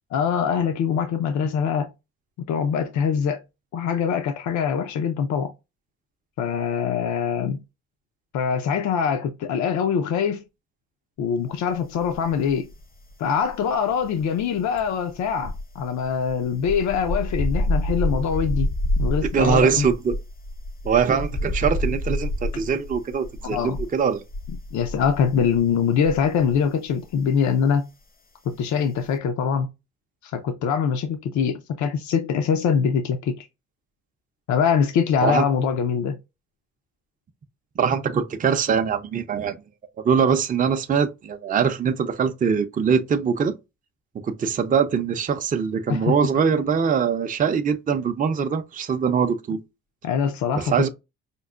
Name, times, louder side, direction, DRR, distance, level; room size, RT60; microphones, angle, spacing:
voice 1, 0.1-1.9 2.4-3.4 3.7-5.5 6.4-7.6 8.3-10.4 11.2-12.7 13.2-18.7 19.0-19.9 23.4-23.8 24.5-27.9 28.5-29.7 30.2-33.5 34.5-36.2 45.9-46.2 50.0-50.9, left 7 dB, 70° left, 0.6 m, -23 dB
sound 1, 12.0-12.8 13.1-26.6 26.9-27.2, left 1 dB, 30° left, 0.6 m, -28 dB
voice 2, 19.3-20.1 20.8-24.2 35.2-35.4 37.8-39.6 40.0-43.5 44.2-49.6 50.5-50.9, right 6 dB, 25° right, 0.5 m, -22 dB
5.2 x 2.1 x 2.3 m
cardioid pair, 90°, 30 cm